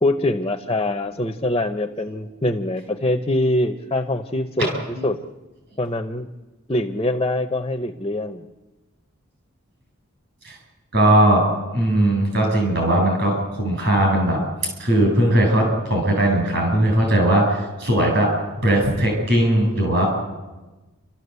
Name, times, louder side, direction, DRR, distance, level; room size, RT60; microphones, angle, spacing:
voice 1, 0.0-5.2 5.8-6.3 6.7-8.5, left 1 dB, 20° left, 7 dB, 0.8 m, -24 dB
voice 2, 10.9-11.4 11.7-14.4 14.8-18.3 18.6-20.1, right 1 dB, 50° right, 2 dB, 7.8 m, -18 dB
29.0 x 13.5 x 8.2 m, 1.2 s
head